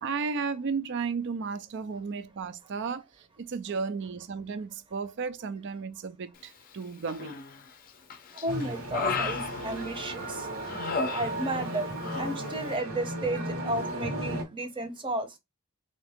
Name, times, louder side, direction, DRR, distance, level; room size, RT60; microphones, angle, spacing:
voice 1, 0.0-3.0 3.4-7.4, right 5 dB, 55° right, 0.4 m, -34 dB
Human voice, 7.1-7.7 8.1-10.2 10.7-11.7 12.0-12.3, left 4 dB, 40° left, 0.5 m, -33 dB
voice 2, 8.4-10.5 11.1-11.9 12.2-15.3, right 1 dB, 25° right, 0.8 m, -33 dB
sound 1, 8.5-14.4, right 1 dB, 75° right, 1.4 m, -35 dB
3.7 x 2.7 x 3.5 m
head